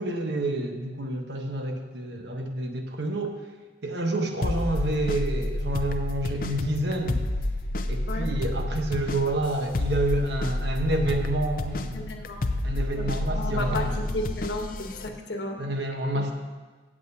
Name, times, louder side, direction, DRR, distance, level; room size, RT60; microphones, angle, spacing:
voice 1, 0.0-3.4 3.8-7.2 7.9-12.1 12.6-14.0 15.6-16.3, right 1 dB, 75° right, 3 dB, 1.2 m, -28 dB
sound 1, 4.4-15.1, left 1 dB, 50° left, 0.6 m, -30 dB
voice 2, 11.9-12.4 13.0-13.1 13.3-15.6, left 2 dB, 80° left, 3 dB, 1.2 m, -33 dB
16.0 x 7.5 x 2.9 m, 1.3 s
head